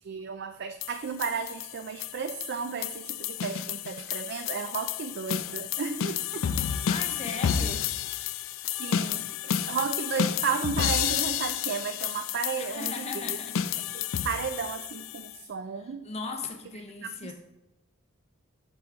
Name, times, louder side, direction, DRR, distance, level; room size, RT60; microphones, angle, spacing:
voice 1, 0.0-6.5 8.8-9.3 9.7-13.4 13.9-16.1 17.0-17.3, right 6 dB, 55° right, 9 dB, 0.4 m, -33 dB
sound 1, 0.8-15.4, left 9 dB, 70° left, 0.4 m, -31 dB
voice 2, 6.9-7.9 12.6-13.6 15.7-17.3, left 4 dB, 30° left, 5 dB, 0.7 m, -38 dB
8.2 x 6.3 x 3.5 m, 0.94 s
head